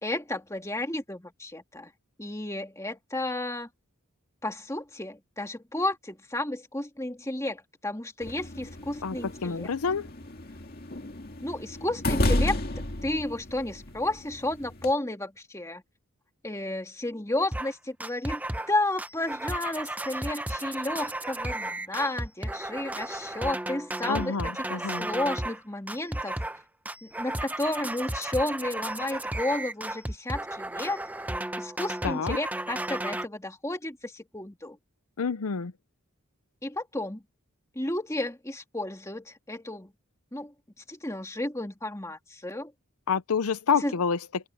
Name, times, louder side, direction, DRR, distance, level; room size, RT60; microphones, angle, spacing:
voice 1, 0.0-1.9 2.2-3.7 4.4-9.7 11.4-12.6 13.0-15.8 16.4-18.4 18.7-26.4 27.0-31.0 31.6-34.8 36.6-37.2 37.7-39.9 40.3-40.5 40.9-42.7 43.8-43.9, left 1 dB, 15° left, 2.3 m, -32 dB
sound 1, 8.2-14.9, left 1 dB, 45° left, 2.2 m, -32 dB
voice 2, 9.4-10.1 24.1-25.1 32.0-32.4 35.2-35.7 43.1-44.5, left 5 dB, 85° left, 0.6 m, -28 dB
sound 2, 17.5-17.7 18.0-18.7 19.0-25.6 25.9-26.6 26.9-33.3, right 1 dB, 5° right, 0.6 m, -34 dB
open air
head